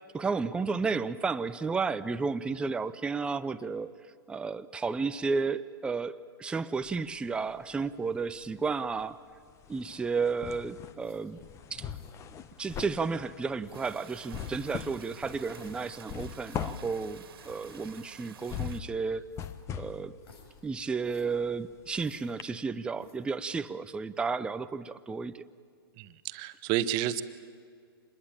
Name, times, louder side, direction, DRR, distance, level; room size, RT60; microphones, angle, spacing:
voice 1, 0.1-4.0 4.3-9.2 9.7-11.4 11.7-11.9 12.6-19.3 19.7-20.2 20.6-25.4, right 4 dB, 10° right, 11 dB, 0.6 m, -32 dB
sound 1, 6.8-7.9 8.2-22.0 22.4-22.5, left 8 dB, 25° left, 1.1 m, -42 dB
sound 2, 10.9-11.4 11.9-12.2 12.7-13.2 13.6-14.0 14.6-15.8 16.4-16.8 17.1-17.2 17.4-17.6 18.4-18.6 19.3-19.7 20.2-20.6 21.0-21.2 21.9-22.6 22.9-23.3, left 3 dB, 75° left, 6.3 m, -56 dB
sound 3, 13.7-18.8, right 8 dB, 70° right, 2.1 m, -51 dB
voice 2, 26.0-27.2, right 12 dB, 35° right, 13 dB, 1.2 m, -30 dB
26.0 x 21.0 x 8.9 m, 2.1 s
hypercardioid pair, 120°, 13 cm